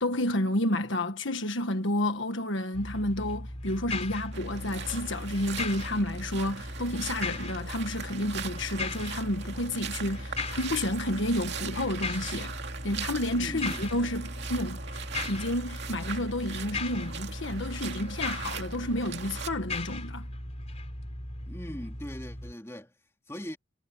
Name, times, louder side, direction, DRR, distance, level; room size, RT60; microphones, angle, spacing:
voice 1, 0.0-12.5 12.8-14.8 15.3-20.3, left 1 dB, 60° left, 1.6 m, -30 dB
sound 1, 2.7-22.5, left 2 dB, 30° left, 3.4 m, -37 dB
sound 2, 4.3-19.5, right 7 dB, 50° right, 2.6 m, -41 dB
voice 2, 13.3-13.9 21.5-22.9 23.3-23.6, equal, 10° left, 2.6 m, -40 dB
head